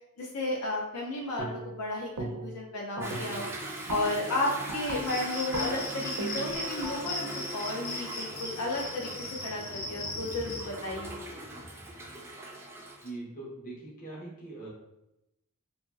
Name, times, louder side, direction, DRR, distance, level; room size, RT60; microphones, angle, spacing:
voice 1, 0.2-3.5 3.9-11.2, left 2 dB, 80° left, -1 dB, 0.5 m, -33 dB
sound 1, 1.4-1.8 2.2-2.7 3.0-8.8, right 2 dB, 70° right, 0.5 m, -39 dB
Toilet flush / Drip / Trickle dribble, 3.0-13.1, right 1 dB, 10° right, 0.3 m, -41 dB
Cricket, 5.0-10.6, left 2 dB, 65° left, 1.2 m, -39 dB
voice 2, 13.0-14.7, right 2 dB, 40° left, -5 dB, 0.8 m, -42 dB
2.9 x 2.7 x 2.3 m, 0.90 s
head